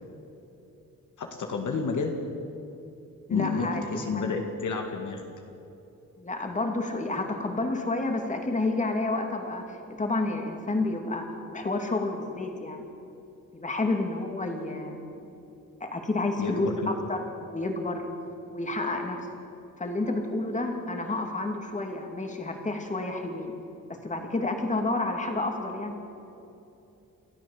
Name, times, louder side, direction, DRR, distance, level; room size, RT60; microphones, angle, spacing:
voice 1, 1.2-2.1 3.3-5.2 16.4-16.9, left 4 dB, 60° left, 3 dB, 2.1 m, -30 dB
voice 2, 3.3-4.3 6.2-12.8 13.5-15.1 15.8-18.0 18.5-19.3 19.8-23.5 23.9-25.9, left 2 dB, 20° left, 3 dB, 2.6 m, -30 dB
29.0 x 13.5 x 7.4 m, 2.9 s
wide cardioid pair, 155°, 34 cm